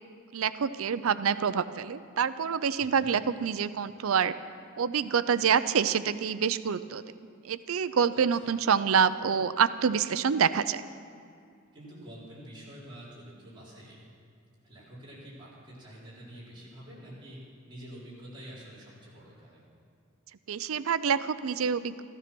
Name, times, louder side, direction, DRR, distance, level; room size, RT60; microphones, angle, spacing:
voice 1, 0.3-4.3 4.8-7.0 7.4-10.8 20.5-22.0, right 7 dB, 75° right, 14 dB, 0.5 m, -27 dB
voice 2, 2.8-3.1 8.1-8.6 11.7-14.0 14.6-17.4 17.7-19.6, right 1 dB, 20° right, -8 dB, 4.8 m, -47 dB
14.5 x 13.0 x 6.1 m, 2.3 s
head